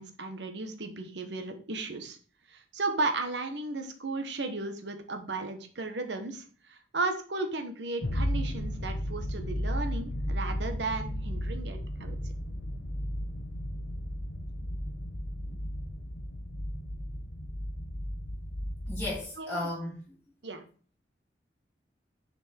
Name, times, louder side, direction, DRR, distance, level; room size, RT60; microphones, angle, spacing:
voice 1, 0.0-2.2 2.5-12.2 15.5-15.6 19.4-19.7 20.4-20.6, right 3 dB, 85° right, 6 dB, 1.2 m, -35 dB
sound 1, 8.0-19.2, equal, 70° left, 1.0 m, -34 dB
voice 2, 18.9-20.0, left 1 dB, 5° left, -11 dB, 2.6 m, -34 dB
6.7 x 4.5 x 4.4 m, 0.41 s
head